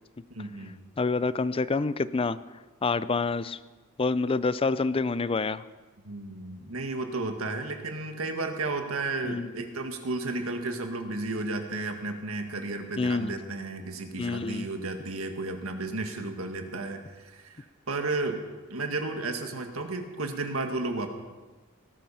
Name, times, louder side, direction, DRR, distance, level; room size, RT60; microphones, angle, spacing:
voice 1, 0.3-0.7 6.0-18.4 18.7-21.1, right 2 dB, 80° right, 5 dB, 1.8 m, -33 dB
voice 2, 1.0-2.4 2.8-3.6 4.0-5.6 9.2-9.5 13.0-13.3 14.2-14.7, left 3 dB, 25° left, 16 dB, 0.4 m, -27 dB
18.5 x 12.0 x 5.7 m, 1.3 s
head